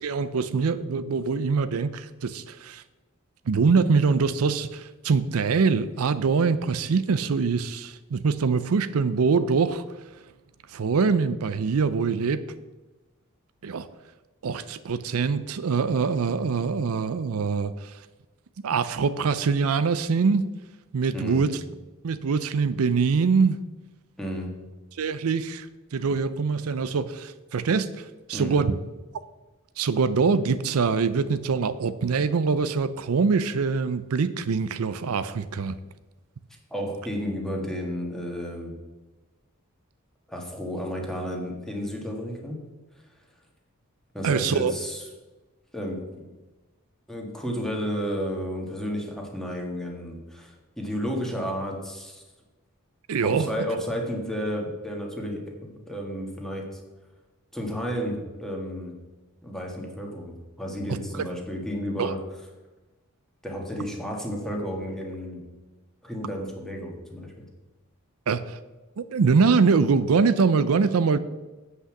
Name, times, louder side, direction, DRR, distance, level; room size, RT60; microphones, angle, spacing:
voice 1, 0.0-2.8 3.5-10.1 10.7-12.4 13.6-13.9 14.4-18.0 18.6-20.5 20.9-21.6 22.0-23.6 24.9-28.8 29.8-35.8 44.2-44.7 53.1-53.5 61.1-61.2 62.0-62.1 68.3-68.6 69.0-71.2, right 5 dB, 75° right, 13 dB, 0.5 m, -24 dB
voice 2, 24.2-24.6 28.3-28.7 36.7-38.7 40.3-42.7 44.1-45.0 45.7-46.3 47.1-52.2 53.2-56.8 57.5-59.0 59.4-62.2 63.4-65.4 66.0-67.3, equal, ahead, 0 dB, 1.8 m, -32 dB
8.0 x 5.6 x 7.2 m, 1.1 s
head